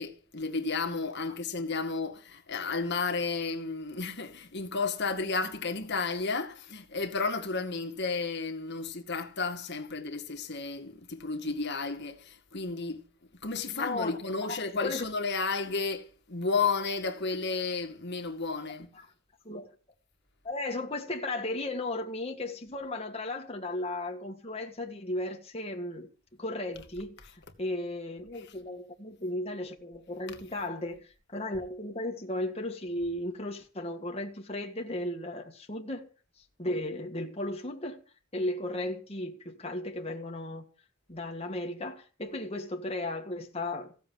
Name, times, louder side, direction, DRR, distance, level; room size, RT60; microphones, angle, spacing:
voice 1, 0.0-13.0 13.4-18.9, left 4 dB, 50° left, 2.1 m, -32 dB
voice 2, 13.7-15.1 18.9-19.1 19.5-19.7 20.4-26.1 26.4-27.2 27.6-36.1 36.6-38.0 38.3-40.6 41.1-43.9, left 1 dB, 25° left, 1.9 m, -35 dB
16.0 x 7.3 x 9.4 m
head